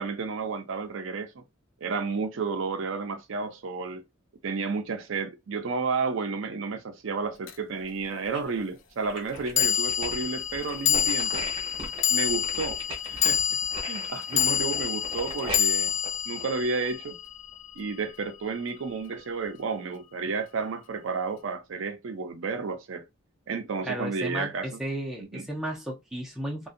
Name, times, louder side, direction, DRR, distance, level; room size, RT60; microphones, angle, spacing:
voice 1, 0.0-1.4 1.8-4.0 4.4-11.4 12.1-12.8 13.0-15.9 16.3-17.2 17.8-23.0 23.5-24.8 25.3-25.5, right 4 dB, 65° right, 0.4 m, -32 dB
sound 1, 7.5-7.6 9.6-18.0, left 9 dB, 60° left, 0.4 m, -27 dB
sound 2, 7.8-8.6 9.0-17.1 17.5-17.6, right 1 dB, 25° right, 0.9 m, -39 dB
voice 2, 23.8-26.7, right 1 dB, ahead, 0.5 m, -34 dB
2.6 x 2.2 x 2.5 m
head